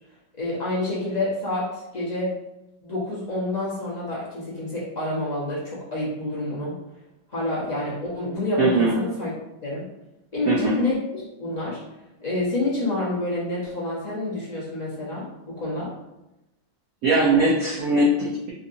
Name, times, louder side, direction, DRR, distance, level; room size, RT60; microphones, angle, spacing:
voice 1, 0.4-2.3 2.8-6.7 7.3-9.3 9.6-9.8 10.3-11.8 12.2-15.9, left 2 dB, 35° left, -8 dB, 0.6 m, -28 dB
voice 2, 8.6-8.9 10.5-10.8 17.0-18.5, right 2 dB, 90° right, -5 dB, 0.7 m, -20 dB
3.9 x 2.6 x 2.6 m, 0.95 s
omnidirectional pair, 2.2 m